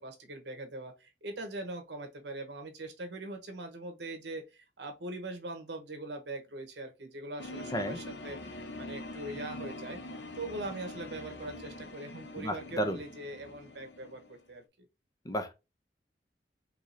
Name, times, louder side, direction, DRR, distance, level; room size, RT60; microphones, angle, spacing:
voice 1, 0.0-10.0 10.4-14.2 14.5-14.6, right 2 dB, 80° right, 1.1 m, -41 dB
sound 1, 7.4-14.4, left 2 dB, 75° left, 0.7 m, -44 dB
voice 2, 12.4-13.0 15.2-15.5, equal, 20° left, 0.6 m, -32 dB
4.8 x 2.9 x 2.6 m
head